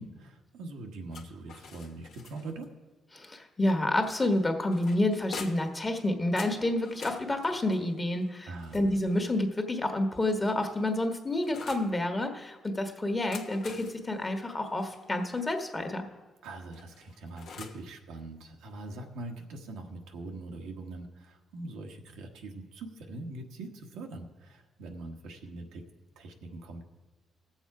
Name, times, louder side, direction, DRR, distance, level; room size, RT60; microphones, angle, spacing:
voice 1, 0.0-2.7 8.4-8.8 16.4-25.8 26.2-26.8, right 2 dB, 90° right, 2 dB, 1.3 m, -42 dB
sound 1, 1.1-2.7 4.0-5.8 6.4-9.3 10.1-11.9 13.1-15.6 16.7-17.9, left 5 dB, 70° left, 1.2 m, -48 dB
voice 2, 3.1-16.1, left 1 dB, 20° left, 5 dB, 1.4 m, -29 dB
17.5 x 7.2 x 4.8 m, 1.2 s
cardioid pair, 90°, 0 cm